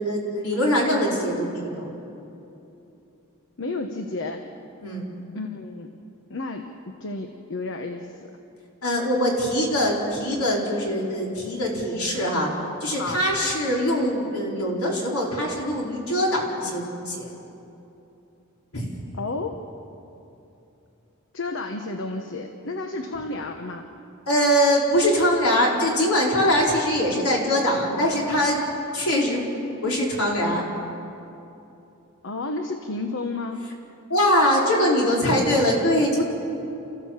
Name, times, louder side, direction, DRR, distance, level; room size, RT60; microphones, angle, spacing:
voice 1, 0.0-1.9 4.8-5.0 8.8-12.5 12.8-17.3 18.7-18.9 24.3-28.6 28.9-29.4 29.8-30.6 34.1-36.2, equal, 90° left, -2 dB, 4.6 m, -22 dB
voice 2, 3.6-4.5 5.3-6.0 6.3-8.3 12.9-13.2 19.2-19.6 21.3-23.9 32.2-33.6, left 3 dB, 60° left, 5 dB, 1.2 m, -32 dB
29.5 x 15.5 x 7.4 m, 2.9 s
head